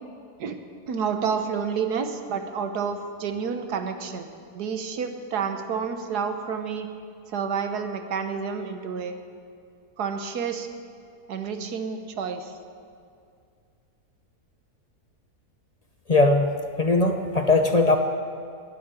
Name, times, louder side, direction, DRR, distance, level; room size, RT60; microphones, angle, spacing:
voice 1, 0.9-4.3 4.5-6.9 7.3-9.2 10.0-10.7 11.3-12.6, right 6 dB, 80° right, 7 dB, 1.6 m, -29 dB
voice 2, 16.1-18.0, left 2 dB, 35° left, 5 dB, 0.6 m, -20 dB
19.5 x 8.6 x 6.9 m, 2.3 s
omnidirectional pair, 1.7 m